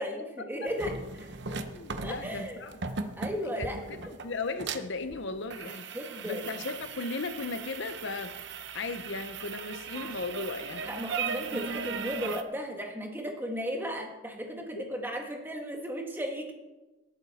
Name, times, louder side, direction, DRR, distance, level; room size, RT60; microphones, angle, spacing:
voice 1, 0.0-1.3 2.0-2.6 3.2-3.8 5.9-6.5 10.8-16.5, equal, 10° right, 2 dB, 1.5 m, -35 dB
sound 1, 0.7-12.4, right 5 dB, 55° right, 0.8 m, -38 dB
voice 2, 1.5-2.8 3.4-3.7 4.0-5.9 6.2-8.3 8.7-10.8, left 3 dB, 55° left, 10 dB, 0.8 m, -36 dB
18.5 x 9.0 x 4.2 m, 1.1 s
head